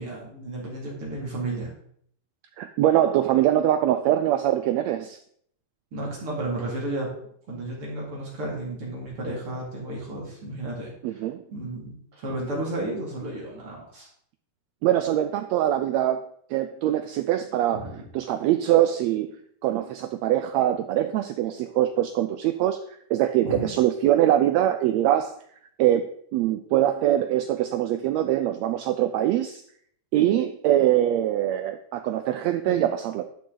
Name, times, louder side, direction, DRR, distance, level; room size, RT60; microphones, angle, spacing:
voice 1, 0.0-1.7 5.9-7.1 7.5-11.2 11.5-14.1 17.7-18.0 23.4-23.7 32.6-32.8, right 2 dB, 45° right, -3 dB, 3.1 m, -33 dB
voice 2, 2.6-5.2 11.0-11.4 14.8-17.9 18.1-19.3 19.6-25.4 25.8-29.6 30.1-33.2, right 12 dB, 90° right, 9 dB, 1.5 m, -23 dB
11.0 x 6.3 x 3.9 m, 0.65 s
omnidirectional pair, 3.6 m